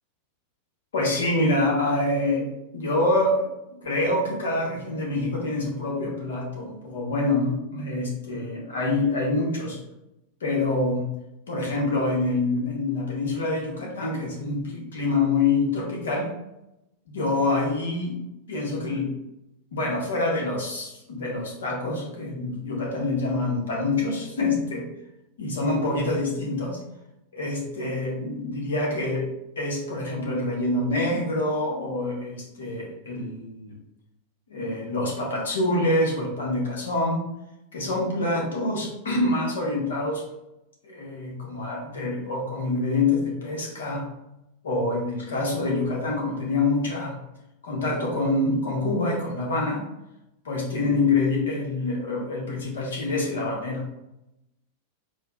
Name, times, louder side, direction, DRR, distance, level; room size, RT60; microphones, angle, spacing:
voice 1, 0.9-3.4 3.8-9.8 10.4-11.1 11.5-16.3 17.1-18.2 18.5-19.1 19.7-24.8 25.4-26.8 27.3-29.3 29.6-33.7 34.5-37.2 37.7-40.2 40.8-44.0 44.6-47.2 47.6-49.8 50.4-53.8, left 2 dB, 65° left, -2 dB, 1.0 m, -26 dB
4.5 x 2.2 x 2.3 m, 0.88 s
figure-of-eight pair, 90°, 0 cm